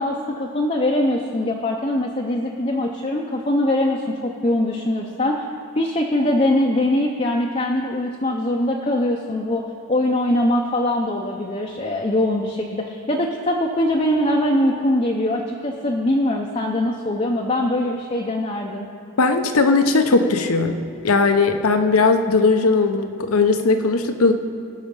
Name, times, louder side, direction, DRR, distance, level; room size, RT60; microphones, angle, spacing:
voice 1, 0.0-5.4 5.8-18.9, left 1 dB, 30° left, 0 dB, 0.6 m, -22 dB
voice 2, 19.2-20.8 21.0-24.3, left 3 dB, 85° left, 7 dB, 0.8 m, -18 dB
18.0 x 6.4 x 5.4 m, 2.5 s
head